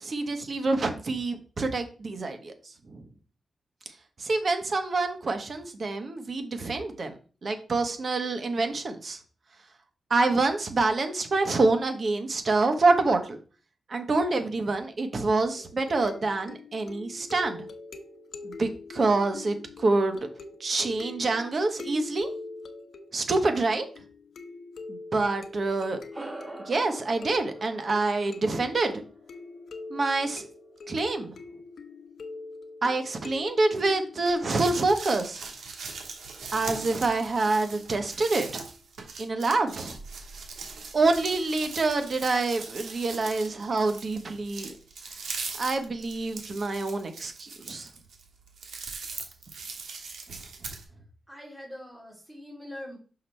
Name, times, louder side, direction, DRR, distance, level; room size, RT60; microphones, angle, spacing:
voice 1, 0.0-2.5 2.9-3.0 4.2-7.1 7.4-9.2 10.1-13.4 13.9-17.7 18.4-20.3 20.6-22.3 23.1-23.9 24.9-26.0 26.7-29.0 29.9-30.4 30.9-31.4 32.8-35.5 36.5-38.6 39.2-40.0 40.9-44.7 45.6-47.9, right 3 dB, 45° right, 6 dB, 1.1 m, -26 dB
sound 1, 15.5-34.7, left 3 dB, 70° left, 0.8 m, -44 dB
sound 2, 26.1-30.9, right 2 dB, 25° right, 1.5 m, -45 dB
sound 3, 34.3-50.8, right 4 dB, 85° right, 1.4 m, -40 dB
voice 2, 51.3-53.0, left 1 dB, 10° right, -2 dB, 2.9 m, -42 dB
5.9 x 5.8 x 3.3 m, 0.37 s
wide cardioid pair, 120°, 0 cm